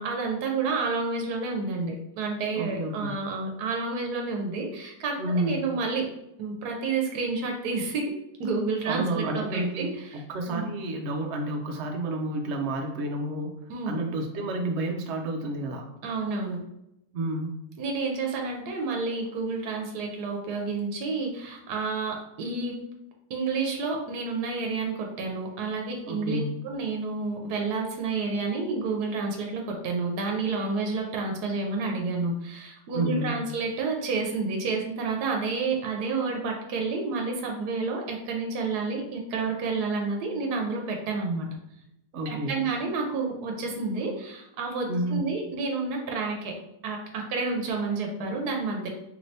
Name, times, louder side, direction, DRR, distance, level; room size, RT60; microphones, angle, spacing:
voice 1, 0.0-6.1 6.4-8.1 8.4-10.2 10.5-10.7 13.7-14.0 16.0-16.6 17.8-22.8 23.3-41.5 42.3-46.6 46.8-48.9, right 4 dB, 90° right, 1 dB, 1.2 m, -30 dB
voice 2, 2.5-3.1 5.2-5.7 8.9-13.5 13.9-15.9 17.1-17.6 26.1-26.6 32.9-33.4 42.1-42.6 44.9-45.3, right 1 dB, 65° right, 2 dB, 0.7 m, -30 dB
3.2 x 3.0 x 2.6 m, 0.83 s
omnidirectional pair, 1.6 m